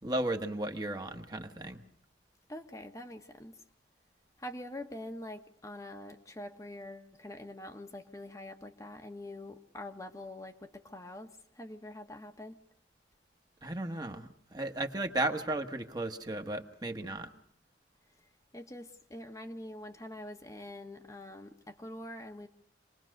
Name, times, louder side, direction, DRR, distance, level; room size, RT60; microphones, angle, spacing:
voice 1, 0.0-1.8 13.6-17.3, right 2 dB, 20° right, 5 dB, 1.2 m, -35 dB
voice 2, 2.5-3.6 4.4-12.6 18.5-22.5, left 1 dB, 20° left, 5 dB, 1.1 m, -45 dB
26.5 x 20.0 x 6.5 m, 0.66 s
head